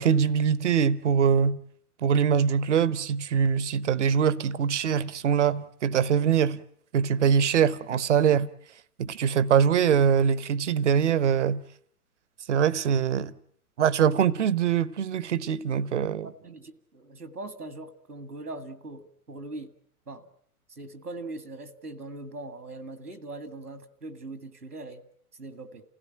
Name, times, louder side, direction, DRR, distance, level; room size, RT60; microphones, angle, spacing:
voice 1, 0.0-1.6 2.0-6.6 6.9-8.5 9.0-11.6 12.5-13.3 13.8-16.3, right 7 dB, 50° right, 1.0 m, -23 dB
voice 2, 16.2-19.7 20.1-20.3 20.7-25.0 25.3-25.8, right 2 dB, 80° right, 2.1 m, -41 dB
29.0 x 16.5 x 8.9 m
figure-of-eight pair, 115°, 46 cm